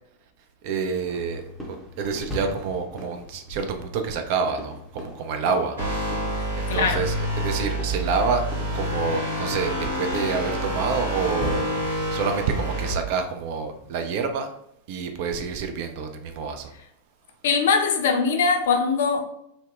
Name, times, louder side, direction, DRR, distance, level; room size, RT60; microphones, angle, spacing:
voice 1, 0.6-1.4 1.7-5.8 6.6-8.5 8.7-11.6 12.1-14.5 14.9-16.7, right 5 dB, 50° right, 0.3 m, -27 dB
sound 1, 1.1-14.3, left 1 dB, 5° right, 0.6 m, -40 dB
sound 2, 5.8-12.9, equal, 70° right, 0.8 m, -28 dB
voice 2, 6.3-7.1 17.4-19.2, left 5 dB, 60° left, 0.4 m, -22 dB
2.6 x 2.1 x 2.4 m
figure-of-eight pair, 90°, 0 cm